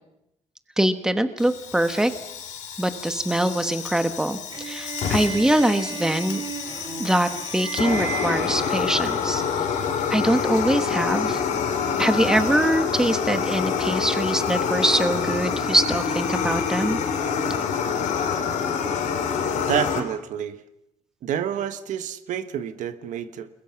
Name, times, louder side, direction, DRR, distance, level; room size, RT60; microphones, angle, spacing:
voice 1, 0.8-2.1 2.8-4.4 4.6-6.4 7.0-9.4 10.1-11.4 12.0-17.0, right 1 dB, 5° right, 9 dB, 1.3 m, -23 dB
Fire, 1.4-20.0, left 6 dB, 80° left, 3.6 m, -27 dB
sound 1, 4.5-9.8, right 6 dB, 35° right, 3.6 m, -35 dB
voice 2, 19.6-20.6 21.2-23.5, right 9 dB, 80° right, 11 dB, 1.4 m, -28 dB
29.5 x 21.0 x 5.9 m, 0.84 s
cardioid pair, 170°, 13 cm